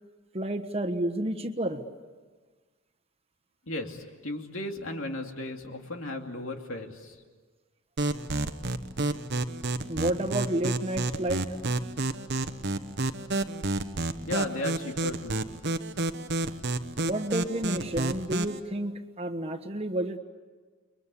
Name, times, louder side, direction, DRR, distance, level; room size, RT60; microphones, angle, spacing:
voice 1, 0.3-1.8 9.9-11.4 17.0-20.2, right 1 dB, 30° right, 7 dB, 1.3 m, -30 dB
voice 2, 3.7-7.2 14.2-15.4, left 2 dB, 70° left, 3 dB, 2.7 m, -35 dB
sound 1, 8.0-18.6, right 2 dB, 50° right, 1.1 m, -30 dB
30.0 x 23.0 x 8.4 m, 1.4 s
head